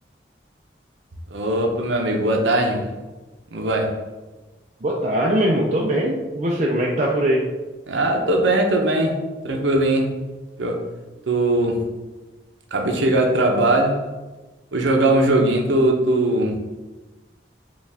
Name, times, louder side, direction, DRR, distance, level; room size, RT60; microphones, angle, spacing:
voice 1, 1.3-2.9 3.5-4.0 7.9-9.2 9.4-10.1 10.6-10.8 11.3-11.8 12.7-14.0 14.7-16.6, right 1 dB, 80° right, 2 dB, 0.7 m, -20 dB
voice 2, 4.8-7.4, right 1 dB, 40° right, -3 dB, 0.4 m, -21 dB
5.0 x 2.4 x 3.4 m, 1.2 s
head